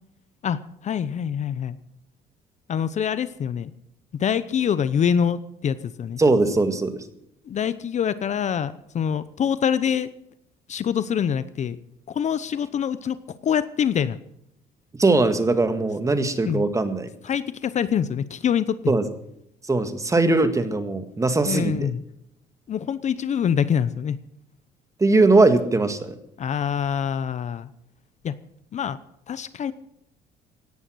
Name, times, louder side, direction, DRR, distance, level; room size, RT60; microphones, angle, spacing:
voice 1, 0.8-1.8 2.7-3.7 4.2-6.2 7.5-10.1 10.7-11.8 12.1-14.2 16.5-16.6 17.2-18.9 21.5-22.0 22.7-24.2 26.4-27.7 28.2-28.3 28.7-29.0 29.3-29.7, left 8 dB, 45° left, 14 dB, 0.8 m, -25 dB
voice 2, 6.2-7.0 15.0-17.1 18.9-19.0 19.7-21.9 25.0-26.2, right 3 dB, 20° right, 9 dB, 1.8 m, -20 dB
17.0 x 11.0 x 6.3 m, 0.75 s
cardioid pair, 110°, 17 cm